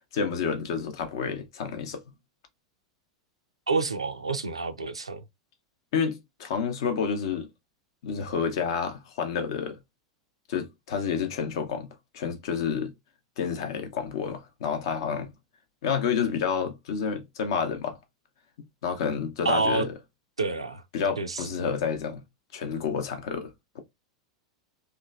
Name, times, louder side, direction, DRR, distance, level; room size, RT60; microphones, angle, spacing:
voice 1, 0.1-2.0 5.9-7.5 8.0-9.8 10.5-11.9 12.1-12.9 13.4-15.3 15.8-18.0 18.8-19.9 20.9-22.2 22.5-23.8, left 6 dB, 60° left, 0.6 m, -29 dB
voice 2, 3.7-5.2 19.4-19.9 20.4-20.8 21.2-21.5, right 3 dB, 90° right, 0.4 m, -28 dB
3.0 x 2.2 x 2.4 m
figure-of-eight pair, 90°, 3 cm